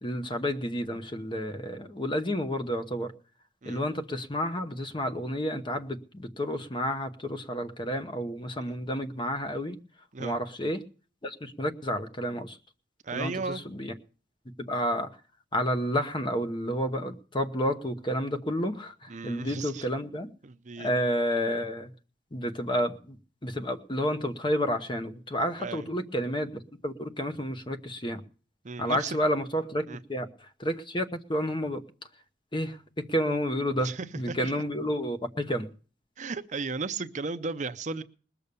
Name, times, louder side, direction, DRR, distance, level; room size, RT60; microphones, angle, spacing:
voice 1, 0.0-3.1 3.6-9.8 10.2-10.8 11.2-12.6 13.1-13.9 14.7-15.1 15.5-20.3 20.8-21.9 22.3-28.2 28.8-29.8 30.1-31.8 32.5-35.7, equal, 25° left, 8 dB, 1.0 m, -30 dB
voice 2, 13.0-13.6 19.1-19.9 20.4-20.9 25.6-25.9 28.6-29.2 29.9-30.0 33.8-34.6 36.2-38.0, right 4 dB, 40° right, 11 dB, 0.6 m, -35 dB
20.0 x 6.9 x 6.8 m, 0.40 s
head